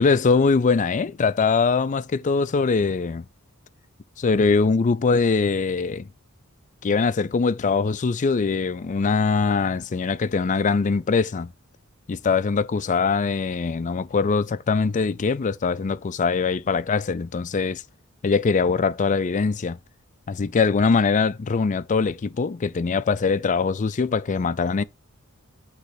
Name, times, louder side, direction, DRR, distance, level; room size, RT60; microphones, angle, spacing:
voice 1, 0.0-3.2 4.2-6.1 6.8-11.5 12.1-17.8 18.2-19.8 20.3-24.8, left 4 dB, 35° left, 0.4 m, -22 dB
9.2 x 3.2 x 4.8 m
head